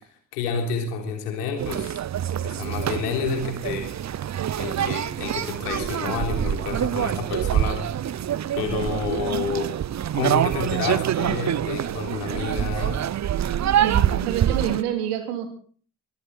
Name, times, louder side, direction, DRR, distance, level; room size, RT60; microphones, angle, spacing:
voice 1, 0.3-2.0 2.4-3.9 4.6-7.8 8.5-9.7 10.1-13.0, left 5 dB, 80° left, 3 dB, 3.7 m, -29 dB
sound 1, 1.6-14.8, right 10 dB, 35° right, 0.7 m, -25 dB
voice 2, 13.8-15.5, right 10 dB, 80° right, 7 dB, 2.8 m, -27 dB
23.0 x 15.0 x 4.0 m, 0.44 s
hypercardioid pair, 45°, 46 cm